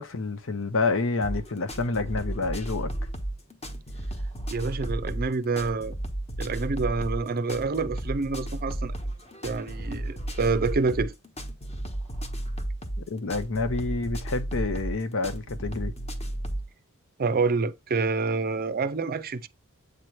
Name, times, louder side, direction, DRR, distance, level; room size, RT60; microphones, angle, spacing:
voice 1, 0.0-2.9 13.1-15.9, left 3 dB, 65° left, 0.8 m, -28 dB
sound 1, 1.2-16.7, right 1 dB, 30° left, 1.2 m, -33 dB
voice 2, 4.5-5.9 6.4-8.9 9.4-11.1 17.2-19.5, right 4 dB, 45° right, 0.5 m, -27 dB
8.1 x 3.1 x 4.5 m
head